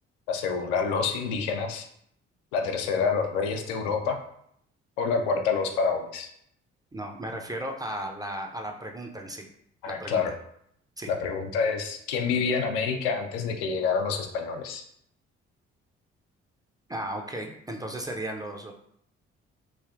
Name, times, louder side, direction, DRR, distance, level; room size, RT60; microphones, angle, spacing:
voice 1, 0.3-1.9 2.5-4.2 5.0-6.3 9.8-10.3 11.1-14.8, left 5 dB, 70° left, 4 dB, 0.5 m, -27 dB
voice 2, 6.9-9.5 9.9-10.2 11.0-11.1 16.9-18.7, right 1 dB, 10° right, 2 dB, 0.4 m, -35 dB
3.3 x 2.6 x 2.4 m, 0.70 s
figure-of-eight pair, 40°, 34 cm